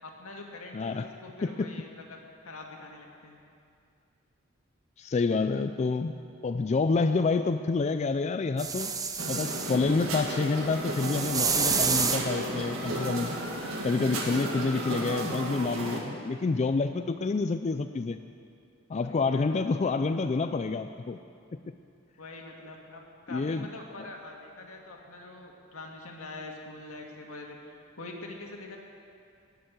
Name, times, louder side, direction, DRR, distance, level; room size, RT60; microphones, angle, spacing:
voice 1, 0.0-3.4 18.9-19.4 22.2-28.8, left 2 dB, 85° left, 0 dB, 2.0 m, -44 dB
voice 2, 0.7-1.1 1.4-1.7 5.0-6.1 6.4-8.9 9.3-13.4 13.8-18.2 18.9-21.2 23.3-23.7, left 4 dB, 30° left, 9 dB, 0.3 m, -28 dB
sound 1, 8.6-9.8 10.9-12.3 14.4-14.5, right 5 dB, 15° right, 0.6 m, -28 dB
sound 2, 9.2-16.0, right 1 dB, 75° right, 1.9 m, -34 dB
18.5 x 6.9 x 8.0 m, 2.5 s
head